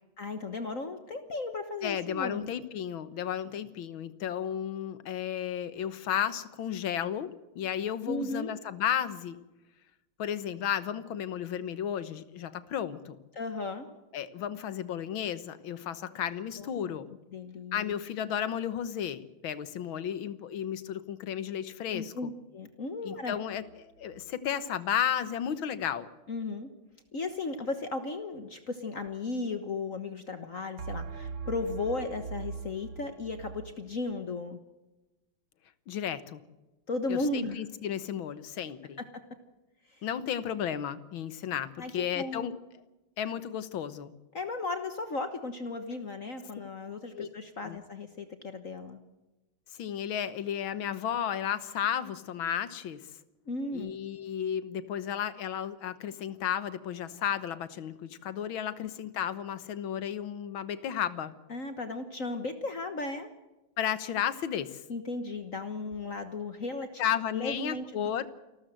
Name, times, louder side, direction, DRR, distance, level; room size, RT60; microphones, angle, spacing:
voice 1, 0.2-2.5 8.1-8.5 13.3-13.9 16.6-17.0 17.3-17.9 21.9-23.4 26.3-26.7 27.1-34.6 36.9-37.6 41.8-42.5 44.3-49.0 53.5-53.9 61.5-63.3 64.9-67.0 67.3-68.1, left 3 dB, 45° left, 8 dB, 1.6 m, -35 dB
voice 2, 1.8-9.4 10.2-13.2 14.1-17.1 17.7-22.3 23.0-23.6 24.0-26.1 35.9-36.4 37.1-39.0 40.0-42.6 43.2-44.1 47.2-47.3 47.6-47.8 49.8-53.0 53.7-61.3 63.8-64.8 67.0-68.3, left 9 dB, 80° left, 15 dB, 1.9 m, -33 dB
sound 1, 23.4-24.3 30.8-33.8, right 5 dB, 75° right, 2.5 m, -41 dB
28.0 x 13.5 x 7.7 m, 1.1 s
omnidirectional pair, 2.2 m